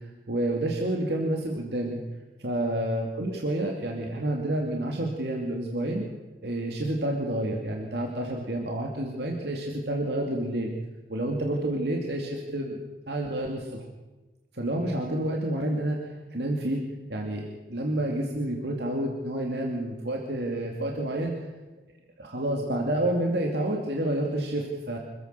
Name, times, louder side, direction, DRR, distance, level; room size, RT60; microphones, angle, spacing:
voice 1, 0.3-2.0 2.4-6.0 6.4-10.7 11.1-12.8 13.1-13.8 14.5-16.8 17.1-17.4 17.7-21.5 22.2-25.0, right 1 dB, 70° right, 0 dB, 2.5 m, -29 dB
26.0 x 15.5 x 6.8 m, 1.1 s
head